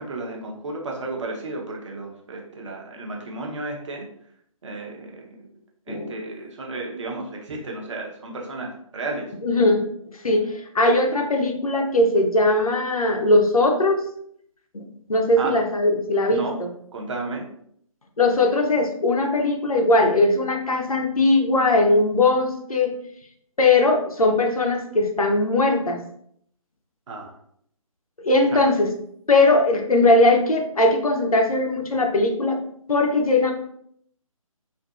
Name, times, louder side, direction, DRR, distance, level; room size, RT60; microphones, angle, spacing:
voice 1, 0.0-4.1 4.6-5.5 5.9-9.2 15.4-15.5 16.3-16.6 16.9-17.5 27.1-27.3 28.5-28.6, right 2 dB, 55° right, -1 dB, 0.8 m, -33 dB
voice 2, 5.9-6.2 9.4-9.9 10.2-14.0 14.7-14.8 15.1-16.7 18.2-22.9 23.6-26.0 28.2-28.9 29.3-32.6 32.9-33.5, left 2 dB, 85° left, 3 dB, 0.6 m, -19 dB
2.5 x 2.5 x 2.3 m, 0.67 s
figure-of-eight pair, 145°, 18 cm